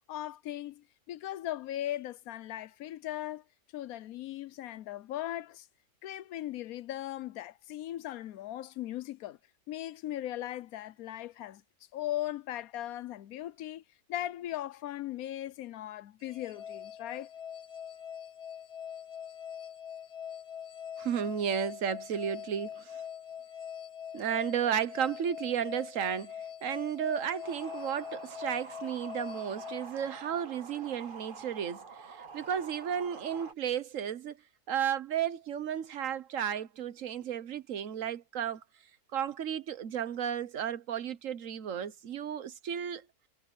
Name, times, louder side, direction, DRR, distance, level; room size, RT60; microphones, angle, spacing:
voice 1, 0.1-3.4 3.7-5.7 6.0-9.4 9.7-11.6 11.9-13.8 14.1-17.3, left 13 dB, 70° left, 1.1 m, -38 dB
sound 1, 16.2-30.6, left 8 dB, 25° left, 3.0 m, -43 dB
voice 2, 21.0-22.9 24.1-26.3 26.6-34.4 34.7-38.6 39.1-43.0, right 8 dB, 60° right, 1.4 m, -33 dB
sound 2, 27.4-33.5, right 4 dB, 35° right, 1.4 m, -47 dB
omnidirectional pair, 1.6 m